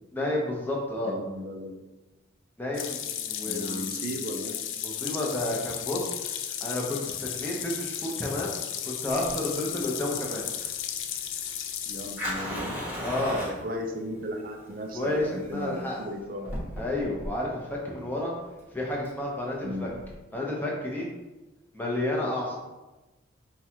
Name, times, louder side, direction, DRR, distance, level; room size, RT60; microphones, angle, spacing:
voice 1, 0.1-1.1 2.6-3.8 4.8-6.3 6.6-8.6 8.8-10.5 12.9-13.5 14.9-16.0 16.8-18.3 18.7-19.9 20.3-21.1 21.7-22.6, left 1 dB, 10° left, -3 dB, 0.7 m, -31 dB
voice 2, 1.0-1.8 3.4-4.6 11.8-12.8 13.4-16.8 19.6-19.9, equal, 45° right, 3 dB, 0.4 m, -36 dB
sound 1, 2.7-12.3, left 9 dB, 75° left, 0.4 m, -34 dB
Fire, 9.2-20.1, equal, 10° right, 1.1 m, -38 dB
4.8 x 2.4 x 4.4 m, 1.1 s
head